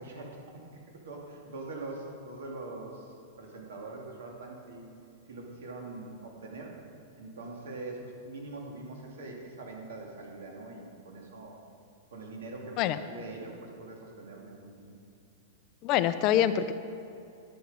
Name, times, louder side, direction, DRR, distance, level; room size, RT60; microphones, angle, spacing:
voice 1, 0.0-4.8 5.3-6.7 7.2-11.6 12.1-15.0, right 2 dB, 80° right, 0 dB, 2.4 m, -43 dB
voice 2, 15.8-16.7, left 11 dB, 30° left, 12 dB, 0.3 m, -25 dB
10.5 x 8.5 x 5.5 m, 2.6 s
supercardioid pair, 170°, 0 cm